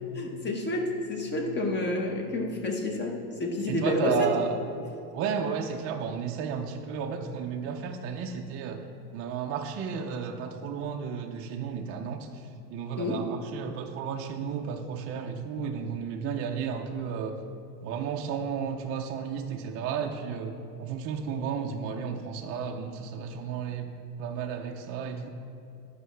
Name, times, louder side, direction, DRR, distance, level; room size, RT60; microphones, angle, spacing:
voice 1, 0.1-4.3 13.0-13.2, left 2 dB, 20° left, 2 dB, 1.0 m, -29 dB
voice 2, 3.7-4.5 5.1-8.8 9.1-17.4 17.8-25.3, right 7 dB, 30° right, 2 dB, 0.4 m, -33 dB
11.0 x 5.5 x 3.2 m, 2.7 s
supercardioid pair, 130°, 47 cm